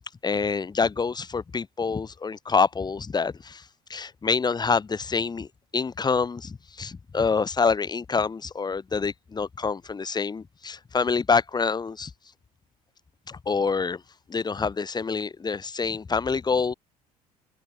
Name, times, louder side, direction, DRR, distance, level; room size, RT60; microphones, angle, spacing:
voice 1, 0.2-3.6 3.9-5.5 5.7-12.1 13.3-14.0 14.3-16.7, left 5 dB, 20° left, 1.4 m, -26 dB
figure-of-eight pair, 60°, 20 cm